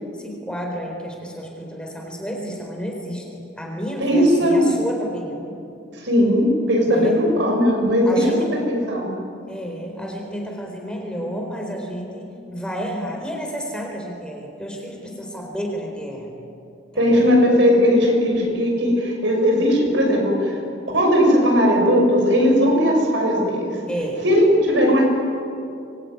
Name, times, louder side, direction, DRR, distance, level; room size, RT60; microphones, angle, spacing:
voice 1, 0.2-5.6 6.9-7.2 8.0-8.6 9.5-16.3 16.9-17.3 23.9-24.2, equal, 5° left, 1 dB, 4.1 m, -31 dB
voice 2, 4.0-4.7 6.0-8.2 8.7-9.1 17.0-20.6 20.9-23.8 24.2-25.0, equal, 65° right, 1 dB, 6.3 m, -18 dB
25.0 x 22.5 x 9.6 m, 2.6 s
head